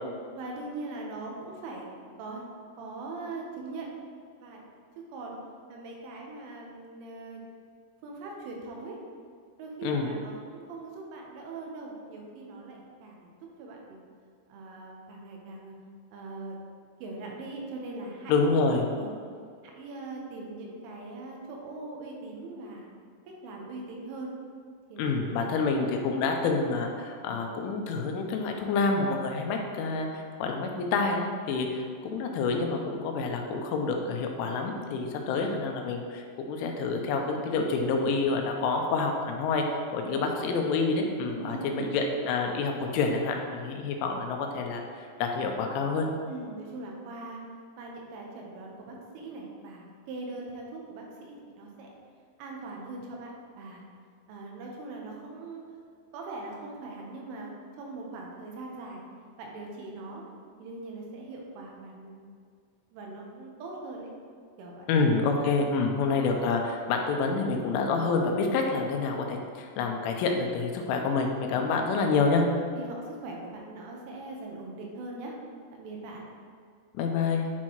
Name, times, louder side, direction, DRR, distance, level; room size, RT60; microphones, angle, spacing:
voice 1, 0.3-1.9 2.2-2.4 2.8-3.9 4.4-4.6 5.1-5.4 5.7-7.4 8.0-9.0 9.6-13.3 13.6-14.0 14.5-15.7 16.1-16.6 17.0-18.5 18.9-19.1 19.7-22.9 23.3-24.3 24.9-25.1 32.0-32.2 40.0-40.4 41.3-42.0 46.3-47.4 47.8-51.9 52.4-53.8 54.3-55.6 56.1-57.5 57.8-59.0 59.4-60.2 60.6-62.1 62.9-64.1 64.6-64.9 65.7-65.9 71.5-71.6 72.8-75.3 75.7-76.3, right 2 dB, 80° right, -1 dB, 3.4 m, -41 dB
voice 2, 9.8-10.1 18.3-18.8 25.0-39.6 39.9-44.8 45.2-46.1 64.9-72.4 76.9-77.5, left 4 dB, 85° left, 2 dB, 3.1 m, -28 dB
9.5 x 4.5 x 2.9 m, 2.1 s
omnidirectional pair, 5.6 m